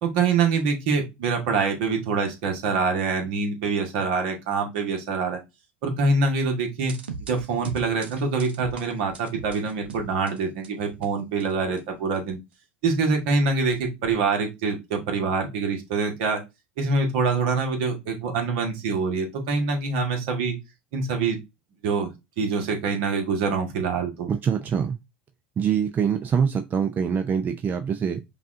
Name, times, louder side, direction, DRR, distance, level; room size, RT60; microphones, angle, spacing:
voice 1, 0.0-5.4 5.8-7.0 7.3-12.4 12.8-16.4 16.8-20.6 20.9-21.4 21.8-22.1 22.4-24.3, right 4 dB, 65° right, 1.3 m, -25 dB
sound 1, 6.8-11.1 11.4-11.8 12.1-12.3, right 5 dB, 85° right, 0.7 m, -39 dB
voice 2, 24.3-25.0 25.6-28.2, right 7 dB, 30° right, 0.4 m, -24 dB
5.4 x 2.4 x 2.5 m
hypercardioid pair, 85°, 6 cm